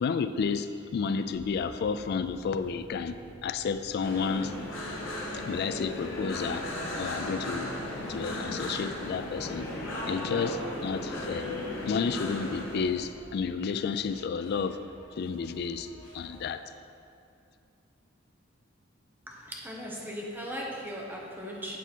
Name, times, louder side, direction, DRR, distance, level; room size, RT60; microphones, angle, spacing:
voice 1, 0.0-4.5 5.3-6.7 7.0-7.7 8.1-9.7 10.0-14.8 15.2-15.9 16.1-16.6, left 5 dB, 55° left, 11 dB, 0.3 m, -31 dB
sound 1, 1.3-14.8, right 1 dB, 30° right, 0.6 m, -52 dB
sound 2, 4.0-12.8, left 1 dB, 75° left, 1.2 m, -36 dB
sound 3, 4.0-16.8, equal, 20° left, 1.6 m, -54 dB
voice 2, 19.3-21.8, equal, 10° right, -3 dB, 0.9 m, -38 dB
8.3 x 4.0 x 4.4 m, 2.4 s
head